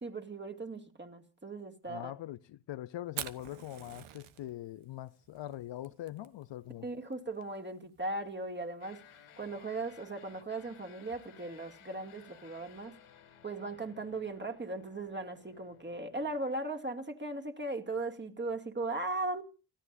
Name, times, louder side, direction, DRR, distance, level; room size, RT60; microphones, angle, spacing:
voice 1, 0.0-2.1 6.8-13.0 13.4-19.4, right 2 dB, 20° right, 2.5 m, -38 dB
voice 2, 1.8-6.9, left 13 dB, 60° left, 0.7 m, -42 dB
Fire, 3.0-12.8, right 12 dB, 80° right, 1.1 m, -50 dB
sound 1, 8.8-16.4, left 8 dB, 80° left, 3.2 m, -58 dB
29.0 x 13.5 x 2.7 m
supercardioid pair, 65°, 49 cm